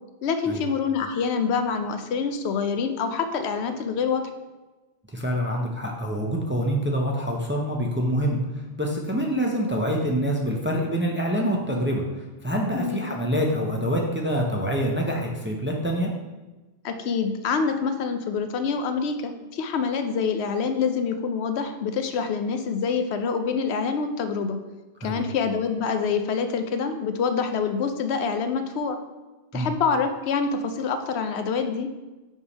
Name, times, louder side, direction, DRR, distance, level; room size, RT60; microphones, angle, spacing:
voice 1, 0.2-4.2 12.7-13.1 16.8-24.6 25.0-29.0 29.5-31.9, left 5 dB, 85° left, 7 dB, 0.9 m, -26 dB
voice 2, 5.1-8.4 8.8-16.1 25.0-25.3 29.5-29.7, equal, 15° right, -1 dB, 0.5 m, -26 dB
5.3 x 3.4 x 5.3 m, 1.2 s
omnidirectional pair, 1.1 m